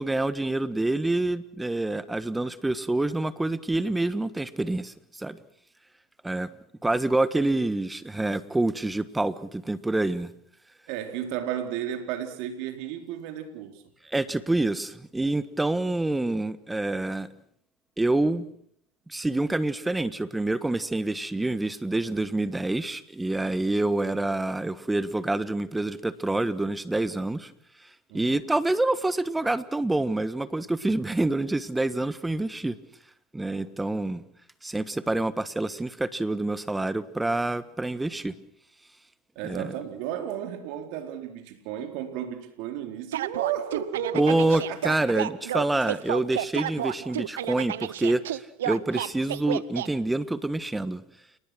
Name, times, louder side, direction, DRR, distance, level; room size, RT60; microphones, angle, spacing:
voice 1, 0.0-5.4 6.2-6.5 6.8-10.3 14.1-17.3 18.0-18.4 19.1-27.5 28.1-32.8 33.3-34.2 34.6-38.3 39.4-39.7 44.1-51.0, right 2 dB, 10° right, 15 dB, 1.4 m, -27 dB
voice 2, 10.9-13.8 28.1-28.4 39.4-44.8 45.1-45.2, right 10 dB, 65° right, 6 dB, 4.1 m, -33 dB
sound 1, 43.1-49.9, right 12 dB, 80° right, 0.9 m, -31 dB
29.5 x 19.5 x 6.3 m, 0.65 s
hypercardioid pair, 90°, 0 cm